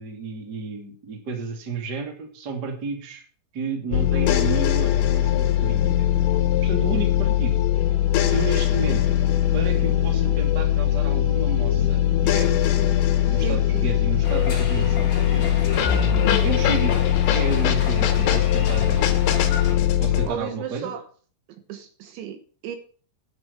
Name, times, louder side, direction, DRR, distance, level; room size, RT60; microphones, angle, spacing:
voice 1, 0.0-3.2 3.5-6.1 6.6-7.6 8.3-9.2 9.5-12.7 13.3-15.6 16.4-16.9 17.3-19.2 20.0-20.9, right 4 dB, 30° right, 1.8 m, -32 dB
sound 1, 3.9-20.3, left 11 dB, 80° left, 4.1 m, -21 dB
voice 2, 13.3-14.1 18.0-18.3 20.2-21.1 21.5-22.8, right 9 dB, 70° right, 3.2 m, -35 dB
sound 2, 14.2-19.8, left 5 dB, 30° left, 3.5 m, -33 dB
9.8 x 9.6 x 5.7 m
omnidirectional pair, 5.8 m